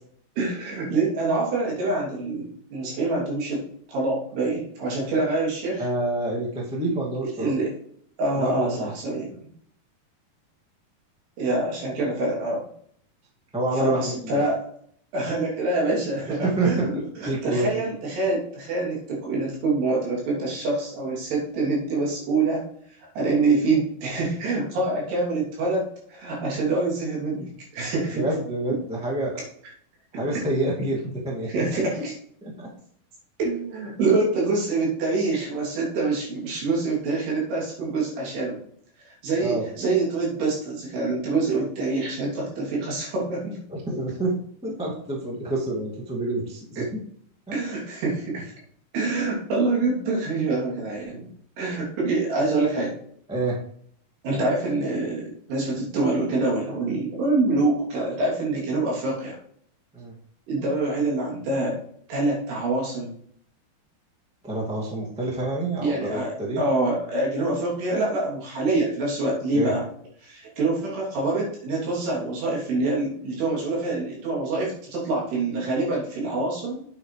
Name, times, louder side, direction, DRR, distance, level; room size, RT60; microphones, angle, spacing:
voice 1, 0.4-5.9 7.4-7.7 8.2-9.3 11.4-12.7 13.8-14.7 15.1-16.9 17.2-22.6 23.1-28.2 31.5-32.1 33.4-38.6 39.1-43.6 46.8-46.9 47.5-48.5 48.9-51.3 51.6-52.9 54.2-59.4 60.5-61.8 62.1-63.1 65.8-69.8 70.2-76.9, right 3 dB, 85° right, -4 dB, 5.1 m, -26 dB
voice 2, 5.8-7.5 8.3-8.9 13.5-14.5 16.3-17.8 28.1-29.4 30.1-31.7 32.4-32.7 39.4-39.6 43.7-44.3 44.6-47.0 53.3-53.6 59.9-60.1 64.4-66.6 69.5-69.8, right 2 dB, 5° right, -3 dB, 0.6 m, -27 dB
9.0 x 8.0 x 3.3 m, 0.63 s
omnidirectional pair, 4.6 m